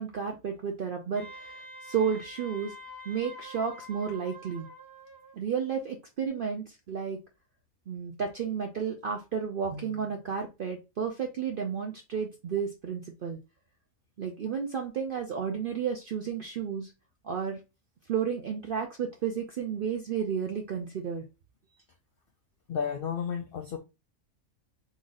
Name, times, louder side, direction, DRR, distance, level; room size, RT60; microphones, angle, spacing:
voice 1, 0.0-2.7 3.1-4.7 5.3-7.2 7.9-13.4 14.2-16.9 17.2-17.6 18.1-21.3, right 7 dB, 70° right, 0.5 m, -32 dB
Wind instrument woodwind instrument, 1.1-5.4, equal, 20° right, 0.6 m, -46 dB
voice 2, 22.7-23.8, left 7 dB, 85° left, 0.5 m, -32 dB
3.1 x 2.5 x 3.8 m
omnidirectional pair, 1.5 m